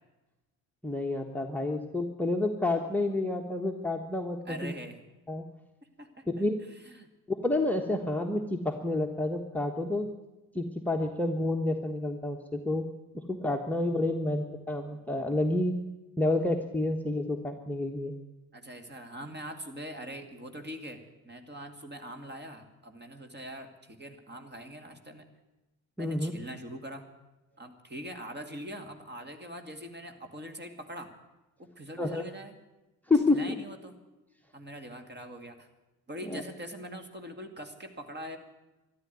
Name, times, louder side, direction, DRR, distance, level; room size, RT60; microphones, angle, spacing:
voice 1, 0.8-4.8 5.3-5.5 6.4-6.6 7.3-10.1 10.5-12.9 13.1-15.8 16.2-18.1 26.0-26.3 32.0-32.2 33.1-33.6 36.3-36.4, left 2 dB, 5° left, 6 dB, 1.3 m, -29 dB
voice 2, 4.5-5.1 6.0-7.1 18.5-25.3 26.0-27.1 27.6-31.1 31.6-32.6 33.3-33.9 34.5-35.7 36.1-38.4, equal, 25° right, 6 dB, 2.3 m, -43 dB
13.0 x 11.0 x 9.4 m, 1.1 s
hypercardioid pair, 55°, 44 cm